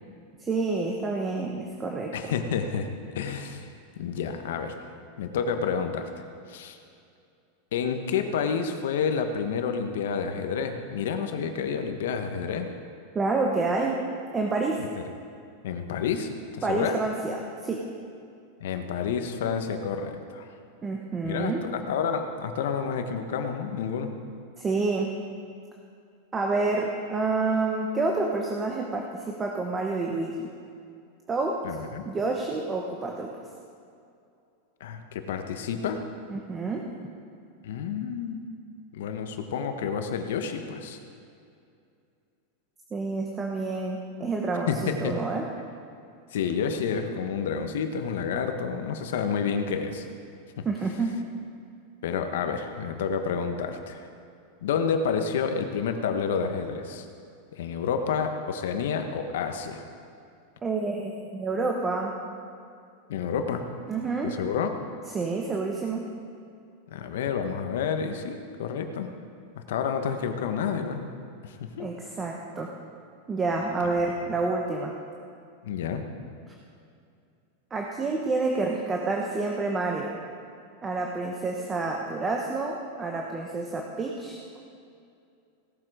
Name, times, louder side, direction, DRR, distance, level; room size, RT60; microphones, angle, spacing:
voice 1, 0.4-2.2 13.1-14.0 14.3-14.8 16.6-17.8 20.8-21.6 24.6-25.1 26.3-30.5 31.3-31.6 32.0-33.3 36.3-36.9 42.9-45.4 50.6-51.1 60.6-62.1 63.9-64.4 65.1-66.1 71.8-72.7 73.3-74.9 77.7-80.2 80.8-84.6, right 3 dB, 15° right, 0 dB, 1.0 m, -28 dB
voice 2, 2.1-2.9 3.1-3.7 4.0-4.8 5.2-6.1 6.5-6.8 7.7-12.7 15.6-16.3 16.7-17.0 18.6-20.5 21.2-24.1 31.6-32.0 34.8-36.0 37.6-38.5 38.9-41.0 44.7-45.2 46.3-50.1 50.6-50.7 52.0-54.1 54.6-57.1 57.5-59.8 63.1-63.6 64.2-64.7 66.9-69.1 69.5-71.0 71.4-71.9 75.6-76.0, left 6 dB, 80° left, 6 dB, 1.2 m, -29 dB
17.0 x 7.8 x 4.9 m, 2.5 s
supercardioid pair, 145°, 0 cm